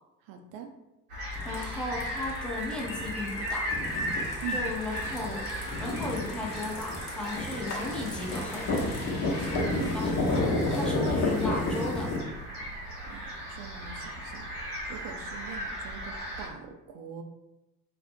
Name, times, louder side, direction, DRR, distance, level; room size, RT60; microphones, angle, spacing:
voice 1, 0.2-0.7 4.4-4.7 9.7-9.9 13.1-14.6 14.9-17.2, right 8 dB, 50° right, 4 dB, 0.5 m, -42 dB
sound 1, 1.1-16.5, equal, 80° right, 0.8 m, -37 dB
sound 2, 1.3-12.2, left 2 dB, 40° left, 0.8 m, -31 dB
voice 2, 1.4-3.7 4.5-5.5 5.8-8.7 9.9-10.1 10.7-12.2, left 2 dB, ahead, -3 dB, 0.5 m, -35 dB
2.5 x 2.0 x 2.5 m, 0.94 s
figure-of-eight pair, 55°, 44 cm